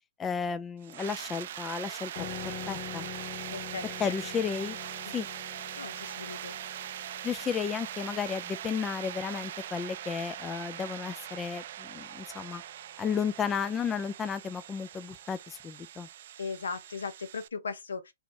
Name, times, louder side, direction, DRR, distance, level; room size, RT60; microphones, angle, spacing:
voice 1, 0.2-3.1 4.0-4.8 5.1-5.3 7.2-12.6 13.0-16.1, left 6 dB, 20° left, 0.4 m, -33 dB
sound 1, 0.8-17.5, right 11 dB, 60° right, 0.3 m, -41 dB
sound 2, 2.1-11.3, left 7 dB, 45° left, 0.8 m, -46 dB
voice 2, 3.5-4.1 5.0-5.2 5.8-6.6 16.4-18.1, left 5 dB, 85° left, 0.9 m, -38 dB
3.4 x 3.1 x 2.9 m
hypercardioid pair, 130°, 0 cm